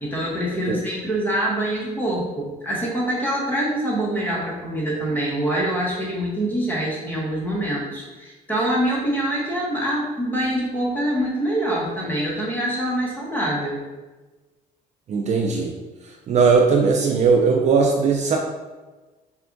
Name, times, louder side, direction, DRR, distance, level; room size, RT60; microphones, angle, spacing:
voice 1, 0.0-13.8, right 1 dB, 10° left, -5 dB, 1.0 m, -25 dB
voice 2, 15.1-15.7 16.3-18.4, right 5 dB, 45° right, 1 dB, 0.4 m, -18 dB
4.3 x 2.3 x 2.5 m, 1.2 s
cardioid pair, 110°, 17 cm